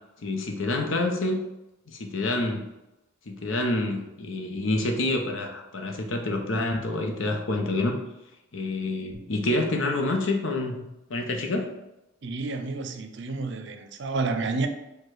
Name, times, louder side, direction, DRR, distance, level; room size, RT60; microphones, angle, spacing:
voice 1, 0.2-1.4 1.9-2.7 3.3-8.0 8.5-10.8 11.1-11.7, left 2 dB, 75° left, 0.7 m, -27 dB
voice 2, 12.2-14.7, right 3 dB, 60° right, 0.5 m, -30 dB
4.8 x 2.3 x 4.6 m
head